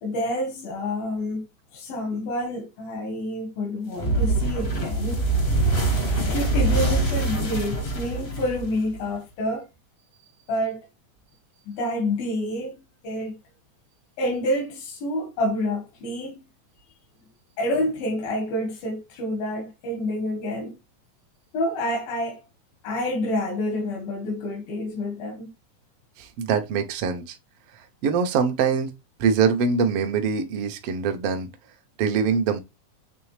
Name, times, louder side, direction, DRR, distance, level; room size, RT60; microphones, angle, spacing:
voice 1, 0.0-1.5 1.7-5.3 6.2-9.7 10.5-10.8 11.7-13.4 14.2-16.4 17.6-20.8 21.5-22.4 22.8-25.5, left 1 dB, 85° left, 3.4 m, -28 dB
sound 1, 4.0-9.1, right 2 dB, 60° left, 0.6 m, -24 dB
voice 2, 26.2-27.4 28.0-28.9 29.2-31.5 32.0-32.6, right 6 dB, 75° right, 1.3 m, -23 dB
8.2 x 3.6 x 3.2 m
omnidirectional pair, 4.0 m